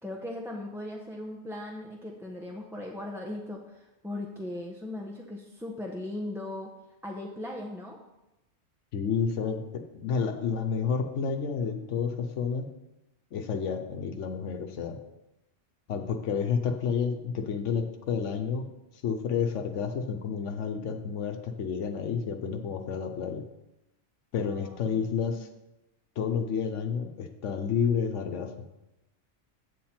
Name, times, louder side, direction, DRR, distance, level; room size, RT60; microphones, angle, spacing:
voice 1, 0.0-6.7 7.0-8.0 24.4-25.4, left 1 dB, 5° right, -1 dB, 0.7 m, -38 dB
voice 2, 8.9-12.7 13.3-15.0 15.9-18.7 19.0-23.4 24.3-25.5 26.2-28.5, left 6 dB, 90° left, 5 dB, 1.1 m, -30 dB
8.2 x 7.4 x 4.3 m, 0.95 s
omnidirectional pair, 1.2 m